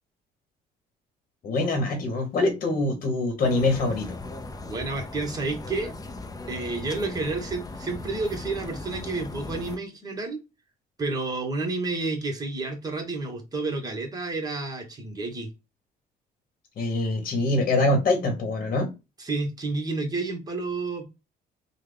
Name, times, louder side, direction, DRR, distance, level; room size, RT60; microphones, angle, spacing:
voice 1, 1.4-4.2 16.8-18.9, left 2 dB, 50° left, 4 dB, 1.1 m, -24 dB
sound 1, 3.4-9.8, left 2 dB, 20° left, 0.5 m, -38 dB
voice 2, 4.7-5.9 6.5-10.4 11.0-15.5 19.2-21.0, right 3 dB, 20° right, 2 dB, 1.2 m, -30 dB
3.3 x 2.2 x 3.4 m, 0.26 s
cardioid pair, 110°, 17 cm